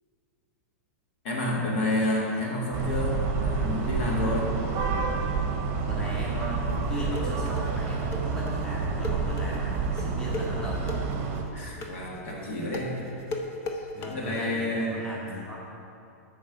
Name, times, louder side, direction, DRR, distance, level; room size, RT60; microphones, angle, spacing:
voice 1, 1.2-4.5 11.5-13.1 13.7-15.0, left 1 dB, 55° left, -3 dB, 1.8 m, -29 dB
sound 1, 2.7-11.4, right 4 dB, 35° right, 0.9 m, -29 dB
Underwater Rumble, 4.9-12.1, right 7 dB, 80° right, 0.4 m, -40 dB
voice 2, 5.8-11.1 12.5-12.9 13.9-15.6, left 1 dB, 10° left, -6 dB, 1.1 m, -37 dB
sound 2, 6.7-14.1, left 2 dB, 30° left, 0.7 m, -36 dB
8.7 x 4.5 x 5.8 m, 2.7 s
supercardioid pair, 145°, 8 cm